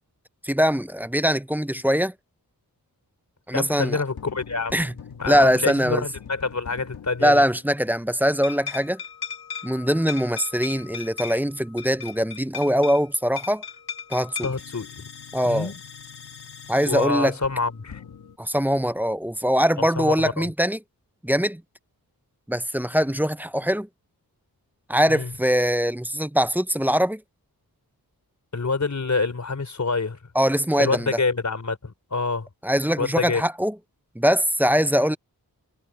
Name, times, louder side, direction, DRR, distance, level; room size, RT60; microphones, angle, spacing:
voice 1, 0.4-2.1 3.5-4.0 4.7-4.9 5.3-6.0 7.2-9.0 9.6-13.6 14.1-14.5 15.3-15.7 16.7-17.3 18.4-20.8 21.2-21.6 22.5-23.9 24.9-27.2 30.3-31.1 32.6-33.7 34.2-35.2, equal, 5° right, 0.6 m, -22 dB
voice 2, 3.5-4.8 5.2-7.4 14.4-15.0 15.4-15.8 16.9-18.0 19.8-20.5 25.1-25.3 28.5-30.2 30.8-32.5 33.0-33.4, left 4 dB, 50° left, 3.7 m, -27 dB
sound 1, 4.1-7.7 8.4-18.4, left 7 dB, 80° left, 1.6 m, -39 dB
wide cardioid pair, 80°, 37 cm